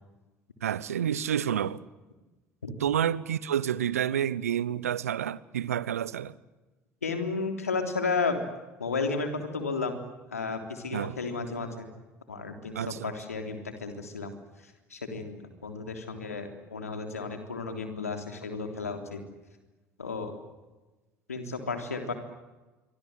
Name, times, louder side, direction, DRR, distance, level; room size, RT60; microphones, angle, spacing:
voice 1, 0.6-1.8 2.8-6.3 10.9-11.2 12.7-13.1, right 9 dB, 80° right, 0.9 m, -29 dB
voice 2, 7.0-8.4 8.8-10.0 10.3-11.9 12.3-14.3 14.9-19.2 20.0-20.3 21.3-22.1, left 4 dB, 90° left, 3.5 m, -33 dB
27.5 x 24.5 x 8.0 m
figure-of-eight pair, 65°, 8 cm